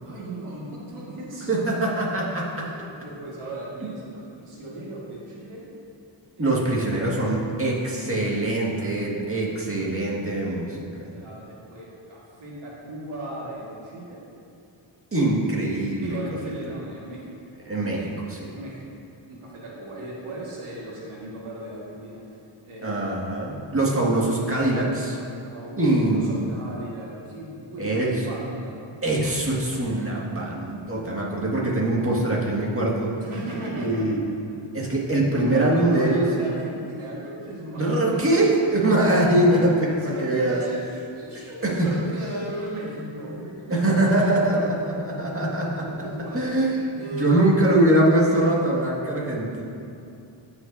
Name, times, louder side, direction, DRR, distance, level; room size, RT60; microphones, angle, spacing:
voice 1, 0.0-1.6 2.5-5.6 6.4-6.9 11.1-14.2 15.9-17.3 17.8-18.1 18.5-19.0 19.3-23.4 25.1-28.8 33.2-34.3 34.9-35.0 35.3-38.7 39.8-45.0 45.8-46.6 46.9-47.4, right 1 dB, 90° right, -6 dB, 1.8 m, -37 dB
voice 2, 1.5-2.6 3.8-3.9 6.4-11.2 15.1-16.2 17.7-18.5 22.8-25.2 25.7-26.5 27.8-28.1 29.0-33.1 33.8-34.2 34.7-36.3 37.8-40.6 41.3-41.9 43.7-45.9 46.3-46.8 47.1-49.6, right 1 dB, 25° right, -4 dB, 1.8 m, -23 dB
15.5 x 5.8 x 2.7 m, 2.7 s
cardioid pair, 75°, 49 cm